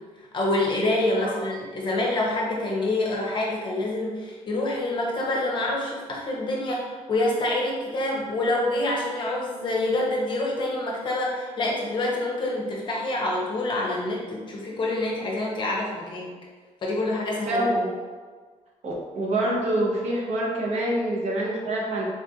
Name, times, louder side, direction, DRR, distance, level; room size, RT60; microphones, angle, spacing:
voice 1, 0.3-16.3 16.8-17.7, left 2 dB, 40° left, -3 dB, 0.7 m, -26 dB
voice 2, 17.5-17.9 18.8-22.1, right 1 dB, 60° right, -2 dB, 0.7 m, -26 dB
3.6 x 2.4 x 2.7 m, 1.5 s
wide cardioid pair, 170°, 13 cm